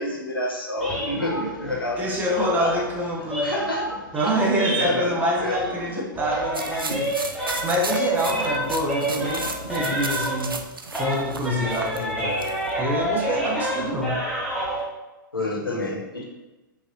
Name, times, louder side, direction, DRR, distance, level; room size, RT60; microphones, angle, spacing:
voice 1, 0.0-2.8 3.4-3.9 4.6-6.0 8.4-8.5 15.3-16.2, left 1 dB, 85° left, -1 dB, 0.9 m, -28 dB
sound 1, 0.8-5.9 6.1-10.6 10.9-14.8, right 1 dB, 5° left, 1.2 m, -29 dB
voice 2, 2.0-3.6 4.1-7.1 7.6-10.5 10.9-12.5 12.8-14.2, equal, 15° right, -1 dB, 0.7 m, -26 dB
sound 2, 6.5-12.7, right 3 dB, 85° right, 0.4 m, -34 dB
4.9 x 2.7 x 2.8 m, 1.1 s
figure-of-eight pair, 105°, 11 cm